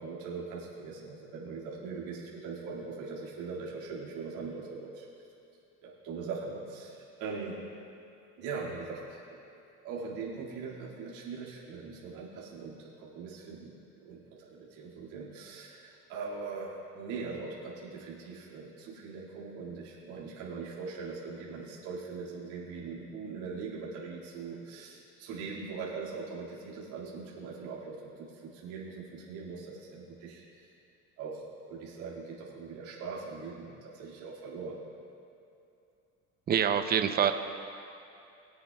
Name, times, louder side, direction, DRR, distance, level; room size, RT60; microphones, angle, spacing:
voice 1, 0.0-5.1 5.8-7.6 8.4-9.4 9.8-13.7 14.0-30.7 31.2-34.8, right 4 dB, 85° right, -6 dB, 2.2 m, -41 dB
voice 2, 36.5-37.3, right 8 dB, 30° right, 8 dB, 0.6 m, -25 dB
23.0 x 7.8 x 2.3 m, 2.7 s
cardioid pair, 110°, 34 cm